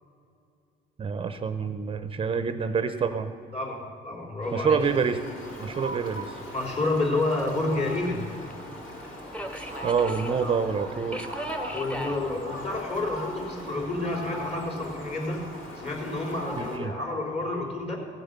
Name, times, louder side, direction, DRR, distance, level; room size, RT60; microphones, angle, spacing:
voice 1, 1.0-3.3 4.5-5.2 5.6-6.4 9.8-11.3 16.6-16.9, right 5 dB, 35° right, 10 dB, 0.7 m, -27 dB
voice 2, 3.5-4.8 6.5-8.3 10.4-10.6 11.7-15.4 15.8-18.0, left 2 dB, 35° left, 0 dB, 3.5 m, -29 dB
Subway metro underground, 4.4-16.8, right 1 dB, 5° left, 1.0 m, -42 dB
Fowl, 4.8-16.8, equal, 55° left, 3.5 m, -40 dB
16.0 x 8.1 x 6.7 m, 2.5 s
cardioid pair, 110°, 17 cm